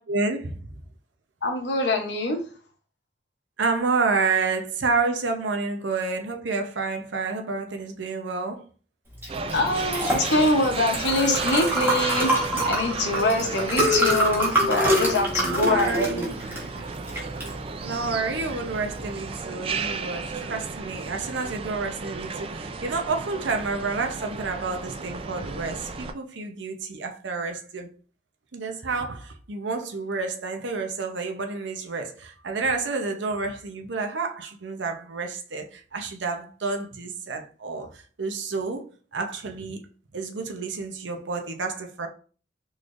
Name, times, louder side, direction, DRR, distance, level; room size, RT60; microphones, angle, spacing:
voice 1, 0.1-0.8 3.6-8.6 15.4-16.3 17.8-27.9 28.5-39.9 40.1-42.1, right 4 dB, 80° right, 0.7 m, -29 dB
voice 2, 1.4-2.4 9.5-16.5, left 2 dB, 70° left, 0.9 m, -24 dB
Liquid, 9.2-19.3, right 1 dB, 10° right, 1.3 m, -26 dB
sound 1, 9.3-26.1, right 4 dB, 30° right, 0.3 m, -34 dB
3.9 x 3.2 x 2.5 m
head